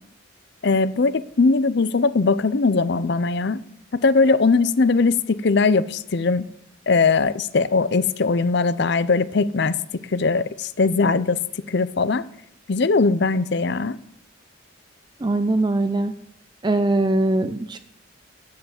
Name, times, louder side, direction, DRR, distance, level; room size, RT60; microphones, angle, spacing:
voice 1, 0.6-3.6 3.9-6.4 6.9-9.8 10.1-11.4 11.7-12.2 12.7-14.0, left 4 dB, 55° left, 16 dB, 0.6 m, -20 dB
voice 2, 15.2-16.1 16.6-17.8, right 2 dB, 20° right, 9 dB, 0.5 m, -21 dB
9.5 x 7.9 x 8.2 m, 0.72 s
head